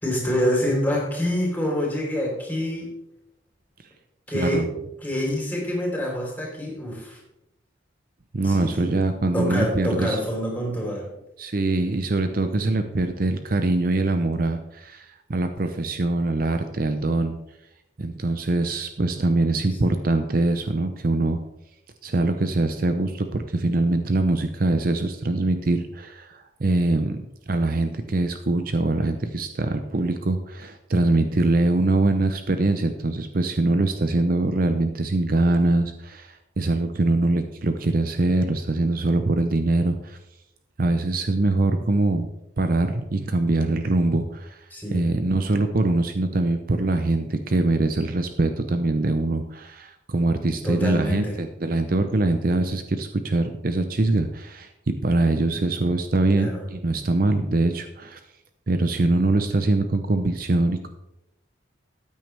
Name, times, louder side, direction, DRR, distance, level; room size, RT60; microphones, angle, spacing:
voice 1, 0.0-2.9 4.3-4.6 5.0-7.2 8.4-8.9 9.3-11.1 19.8-20.0 44.7-45.0 50.6-51.4 56.3-56.6, equal, 10° left, -2 dB, 3.6 m, -26 dB
voice 2, 4.3-4.7 8.3-10.2 11.4-17.4 18.0-21.4 22.0-27.2 27.5-40.2 40.8-42.3 42.6-44.6 44.9-58.2 58.7-60.9, right 2 dB, 50° right, 8 dB, 0.6 m, -23 dB
14.0 x 9.1 x 3.4 m, 0.86 s
head